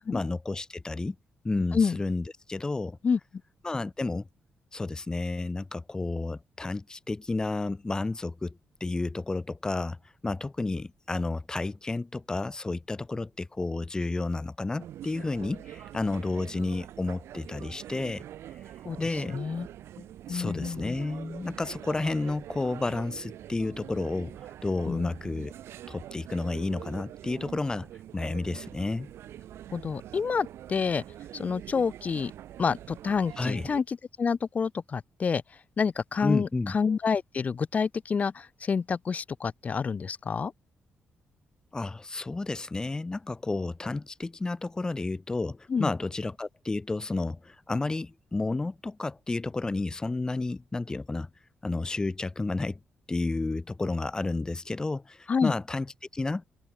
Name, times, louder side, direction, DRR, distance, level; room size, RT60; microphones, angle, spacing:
voice 1, 0.1-1.1 1.4-3.0 3.6-4.3 4.7-10.0 10.2-18.2 19.0-19.4 20.3-24.3 24.6-25.5 25.9-27.9 28.1-29.1 33.4-33.7 36.2-36.7 41.7-51.3 51.6-52.8 53.1-56.4, left 3 dB, 15° left, 1.2 m, -31 dB
sound 1, 14.8-33.8, right 12 dB, 85° right, 4.2 m, -44 dB
voice 2, 19.3-19.7 20.3-21.0 24.9-25.1 29.7-31.0 31.3-32.3 32.6-35.4 35.8-40.5 45.7-45.9 55.3-55.5, left 5 dB, 35° left, 1.4 m, -28 dB
open air
cardioid pair, 140°, 4 cm